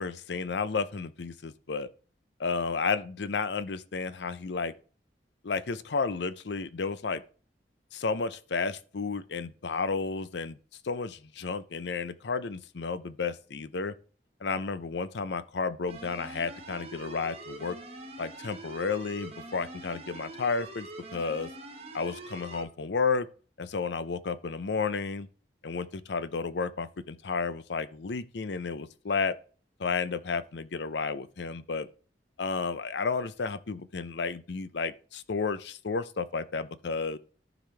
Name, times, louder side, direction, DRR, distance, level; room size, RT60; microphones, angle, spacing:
voice 1, 0.0-1.9 2.4-4.7 5.4-7.2 7.9-10.6 10.8-13.9 14.4-17.8 18.2-21.5 21.9-23.3 23.6-25.3 25.6-29.4 29.8-31.9 32.4-37.2, left 4 dB, 80° left, 0.6 m, -32 dB
sound 1, 15.9-22.6, right 2 dB, 35° right, 1.4 m, -44 dB
14.0 x 5.0 x 3.3 m
head